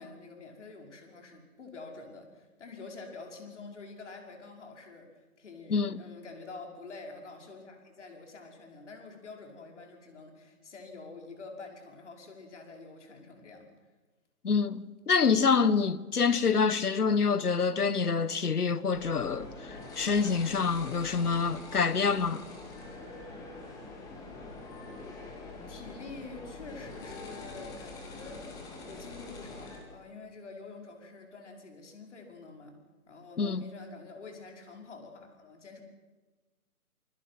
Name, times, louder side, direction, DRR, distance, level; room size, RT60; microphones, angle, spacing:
voice 1, 0.0-13.7 24.8-25.1 25.7-28.4 28.9-32.8 33.1-35.8, left 3 dB, 50° left, 5.6 m, -47 dB
voice 2, 5.7-6.0 14.4-22.4 33.4-33.7, left 5 dB, 85° left, 1.5 m, -27 dB
sound 1, 18.9-29.8, left 3 dB, 10° left, 2.1 m, -44 dB
28.0 x 22.5 x 6.1 m
hypercardioid pair, 160°, 44 cm